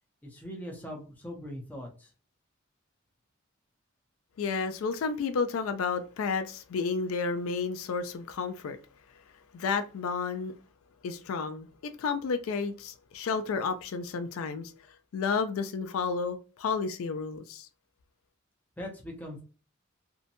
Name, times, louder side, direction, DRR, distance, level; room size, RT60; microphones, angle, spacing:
voice 1, 0.2-2.1 18.8-19.4, equal, 10° left, 0.6 m, -41 dB
voice 2, 4.4-8.8 9.5-10.5 11.0-14.7 15.1-17.7, left 5 dB, 75° left, 0.3 m, -31 dB
2.7 x 2.1 x 2.6 m
head